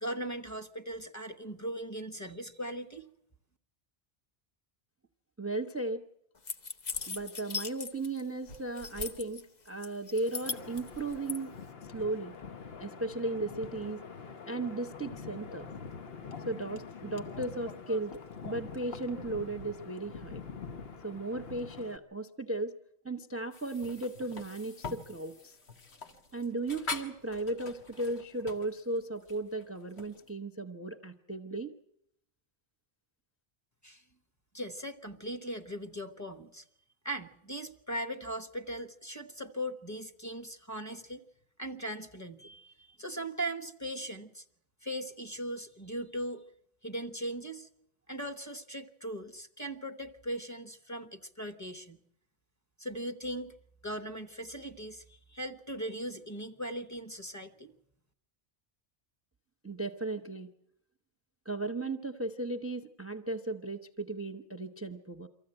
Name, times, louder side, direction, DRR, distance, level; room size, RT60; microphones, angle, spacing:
voice 1, 0.0-3.1 33.8-34.0 34.5-36.6 37.0-41.2 41.6-44.4 44.8-46.4 46.8-47.7 48.1-52.0 52.8-53.5 53.8-57.7, right 1 dB, 15° left, 6 dB, 1.1 m, -39 dB
voice 2, 5.4-6.0 7.1-11.5 11.9-12.3 12.8-14.0 14.5-15.7 16.5-18.2 18.4-20.4 21.0-22.8 23.0-25.6 26.3-31.7 59.6-60.5 61.5-65.3, right 2 dB, 15° right, 8 dB, 0.7 m, -36 dB
sound 1, 6.5-8.2 8.5-9.4 9.8-11.4, left 4 dB, 45° left, 1.1 m, -38 dB
Wind, 10.1-22.0, left 5 dB, 70° left, 1.3 m, -45 dB
sound 2, 23.5-30.3, left 3 dB, 85° left, 1.9 m, -44 dB
24.0 x 14.5 x 8.9 m, 0.76 s
omnidirectional pair, 1.1 m